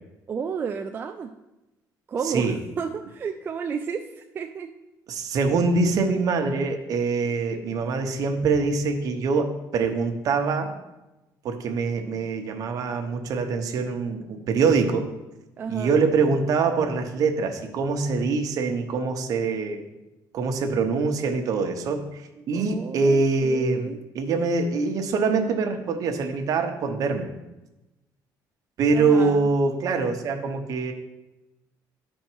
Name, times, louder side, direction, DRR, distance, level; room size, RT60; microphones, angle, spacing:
voice 1, 0.3-1.3 2.1-4.0 4.3-4.7 15.6-16.1 22.4-24.0 28.9-29.5, right 6 dB, 30° right, 4 dB, 0.3 m, -32 dB
voice 2, 2.2-2.6 5.1-10.7 11.4-15.1 15.7-19.8 20.3-22.0 22.5-27.3 28.8-30.9, right 4 dB, 55° right, 4 dB, 0.9 m, -24 dB
11.0 x 4.5 x 4.5 m, 1.0 s
cardioid pair, 165°, 7 cm